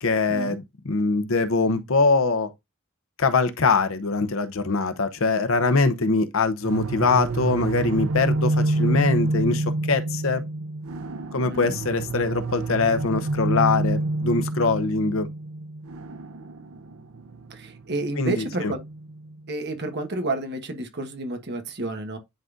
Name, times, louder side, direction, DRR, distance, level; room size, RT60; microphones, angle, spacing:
voice 1, 0.0-2.5 3.2-10.4 11.3-15.3 18.2-18.7, left 4 dB, 70° left, 0.8 m, -23 dB
sound 1, 6.6-19.4, right 2 dB, 85° right, 0.6 m, -28 dB
voice 2, 17.5-18.8 19.5-22.2, right 2 dB, 55° right, 1.3 m, -30 dB
10.5 x 3.8 x 2.5 m
head